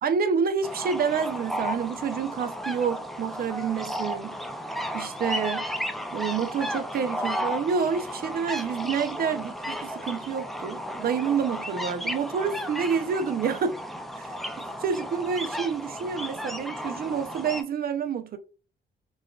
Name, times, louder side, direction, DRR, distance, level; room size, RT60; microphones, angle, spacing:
voice 1, 0.0-4.4 4.9-5.6 6.1-13.8 14.8-18.4, right 6 dB, 50° right, 0.5 m, -28 dB
sound 1, 0.6-17.6, equal, ahead, 0.4 m, -34 dB
4.1 x 2.3 x 2.3 m
cardioid pair, 90°, 20 cm